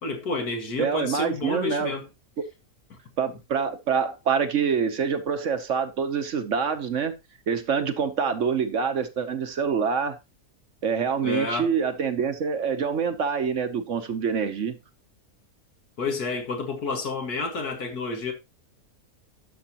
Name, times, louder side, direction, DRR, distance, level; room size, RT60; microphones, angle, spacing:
voice 1, 0.0-2.1 11.2-11.7 16.0-18.3, left 3 dB, 75° left, 2.3 m, -29 dB
voice 2, 0.8-1.9 3.2-7.1 7.5-10.2 10.8-14.7, right 6 dB, 55° right, 1.1 m, -26 dB
11.5 x 6.4 x 2.9 m
omnidirectional pair, 1.6 m